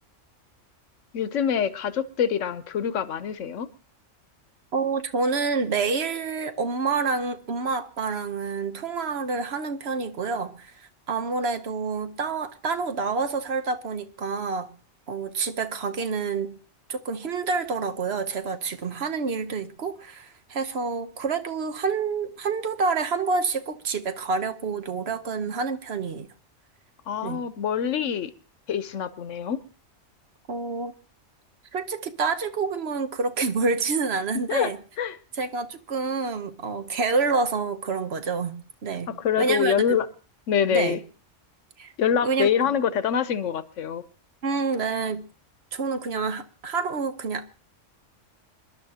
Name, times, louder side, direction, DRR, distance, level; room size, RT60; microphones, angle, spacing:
voice 1, 1.1-3.7 27.1-28.3 28.7-29.6 34.3-34.7 35.0-35.2 39.2-40.1 40.5-41.0 42.0-44.0, left 8 dB, 80° left, 1.2 m, -25 dB
voice 2, 4.7-10.7 11.1-14.7 15.1-16.6 16.9-26.3 27.2-27.4 30.5-30.9 31.7-34.8 35.3-39.1 39.4-40.0 40.7-41.0 41.8-41.9 42.2-42.7 44.4-45.2 45.7-47.5, right 4 dB, 60° right, 1.2 m, -28 dB
26.0 x 11.5 x 2.8 m
omnidirectional pair, 1.3 m